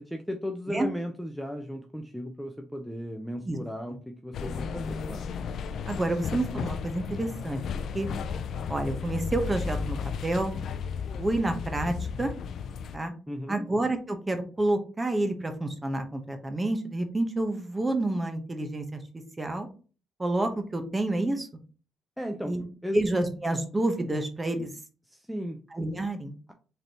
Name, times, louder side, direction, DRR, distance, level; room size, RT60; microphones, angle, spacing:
voice 1, 0.0-5.3 13.3-13.7 22.2-22.6 22.8-23.0 25.0-25.6, equal, ahead, 4 dB, 0.5 m, -36 dB
sound 1, 4.3-13.0, left 6 dB, 65° left, 0.3 m, -34 dB
voice 2, 5.9-7.6 7.9-8.1 8.7-10.5 11.2-12.3 12.9-13.1 13.5-19.0 19.4-19.7 20.2-21.5 22.4-22.6 22.9-24.7 25.7-26.3, right 2 dB, 20° right, 6 dB, 0.9 m, -29 dB
3.9 x 3.4 x 2.9 m, 0.36 s
cardioid pair, 90°, 0 cm